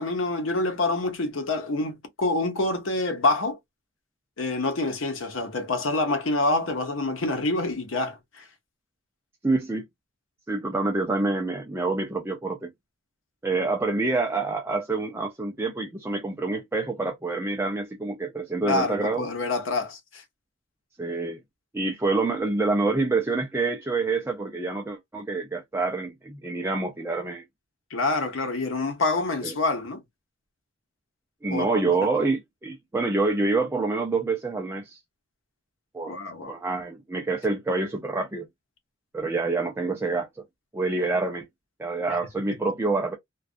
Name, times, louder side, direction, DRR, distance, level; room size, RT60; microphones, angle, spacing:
voice 1, 0.0-3.6 4.4-8.4 18.6-20.2 27.9-30.0 31.5-32.1 36.1-36.6, left 2 dB, 80° left, 0.8 m, -27 dB
voice 2, 9.4-9.9 10.5-12.7 13.4-19.2 21.0-21.4 21.7-27.4 29.4-29.5 31.4-35.0 35.9-36.1 36.5-38.5 39.1-40.3 40.7-41.5 41.8-43.1, right 3 dB, 10° right, 0.4 m, -27 dB
2.4 x 2.3 x 2.4 m
head